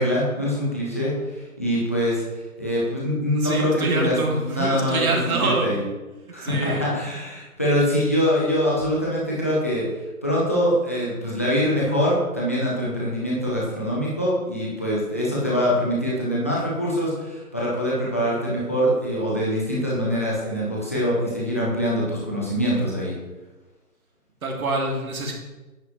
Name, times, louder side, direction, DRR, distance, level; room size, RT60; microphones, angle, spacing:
voice 1, 0.0-2.2 2.6-4.2 4.4-5.8 6.3-9.8 10.2-23.1, equal, 10° left, -6 dB, 0.6 m, -24 dB
voice 2, 3.4-5.7 6.4-6.8 24.4-25.3, right 2 dB, 70° right, 0 dB, 2.3 m, -25 dB
9.8 x 7.2 x 3.0 m, 1.2 s
hypercardioid pair, 160°, 45 cm